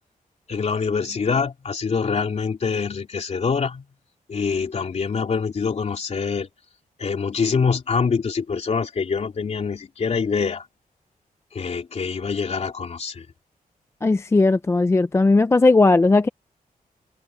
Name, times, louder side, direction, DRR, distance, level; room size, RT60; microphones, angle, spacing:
voice 1, 0.5-3.8 4.3-6.5 7.0-10.6 11.5-13.3, left 5 dB, 50° left, 3.1 m, -25 dB
voice 2, 14.0-16.3, left 3 dB, 20° left, 0.4 m, -17 dB
wide cardioid pair, 170°, 15 cm